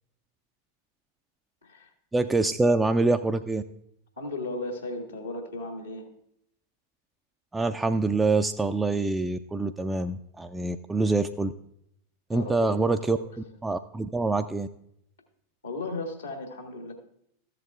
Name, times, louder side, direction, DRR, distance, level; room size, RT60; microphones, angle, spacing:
voice 1, 2.1-3.6 7.5-11.5 12.3-13.2 13.6-14.7, right 3 dB, 10° right, 7 dB, 0.3 m, -25 dB
voice 2, 4.2-6.1 12.3-13.5 15.6-16.9, left 2 dB, 80° left, 3 dB, 1.6 m, -36 dB
14.0 x 7.9 x 2.3 m, 0.73 s
figure-of-eight pair, 90°, 0 cm